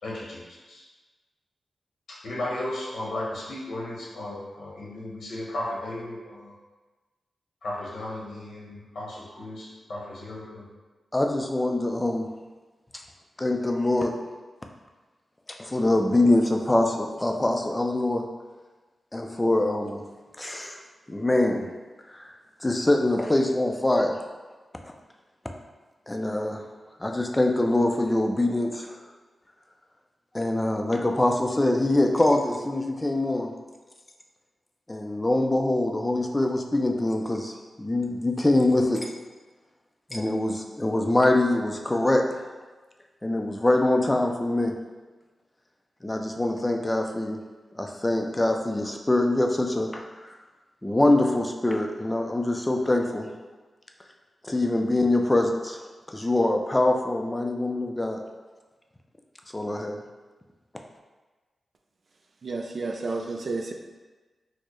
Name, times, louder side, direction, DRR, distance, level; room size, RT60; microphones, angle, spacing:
voice 1, 0.0-0.4 0.7-0.8 2.1-6.5 7.6-10.6, left 1 dB, 85° left, -5 dB, 1.0 m, -35 dB
voice 2, 11.1-12.3 13.4-14.1 15.6-18.2 19.1-20.0 20.4-20.8 21.1-21.7 22.1-22.3 22.6-24.2 26.1-26.6 27.0-29.0 30.3-33.5 34.9-39.1 40.1-42.2 43.2-44.7 46.0-47.4 47.7-50.3 50.8-53.3 54.4-55.8 56.1-58.2 59.5-60.0, left 1 dB, 15° left, 3 dB, 0.4 m, -24 dB
voice 3, 62.4-63.7, right 3 dB, 60° right, 3 dB, 0.3 m, -31 dB
4.3 x 2.0 x 3.0 m, 1.3 s
cardioid pair, 75°, 0 cm